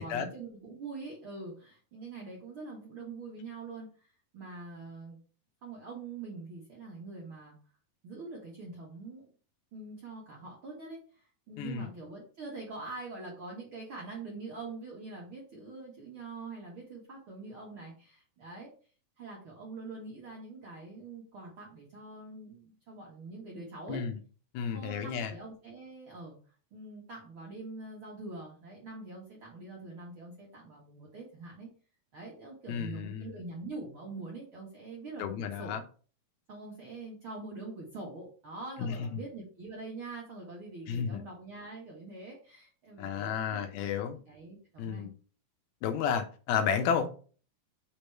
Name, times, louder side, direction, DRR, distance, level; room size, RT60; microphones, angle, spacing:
voice 1, 0.0-5.2 5.6-7.6 8.0-9.3 9.7-18.7 19.2-24.0 24.7-26.3 26.7-31.7 32.1-35.8 36.5-45.1, right 3 dB, 55° right, 1.4 m, -44 dB
voice 2, 11.6-11.9 23.9-24.2 24.5-25.3 32.7-33.3 35.2-35.8 38.8-39.2 40.9-41.2 43.0-44.2 44.8-45.1 45.8-47.1, left 7 dB, 85° left, 2.8 m, -32 dB
6.1 x 3.6 x 4.5 m
omnidirectional pair, 4.3 m